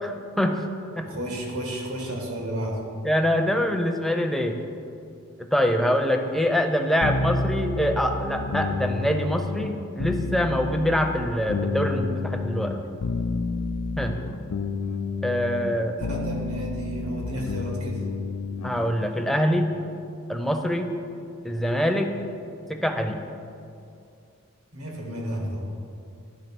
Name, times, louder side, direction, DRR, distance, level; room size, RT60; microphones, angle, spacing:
voice 1, 0.0-0.6 1.0-1.1 3.0-4.6 5.4-12.8 14.0-14.1 15.2-16.0 18.6-19.7 20.3-20.9 21.4-22.1 22.7-23.2, equal, ahead, 4 dB, 0.4 m, -24 dB
voice 2, 1.0-2.8 16.0-18.1 24.7-25.7, right 1 dB, 85° right, 0 dB, 1.5 m, -32 dB
sound 1, 7.0-18.9, left 3 dB, 75° left, 0.4 m, -30 dB
10.5 x 3.5 x 5.9 m, 2.5 s
head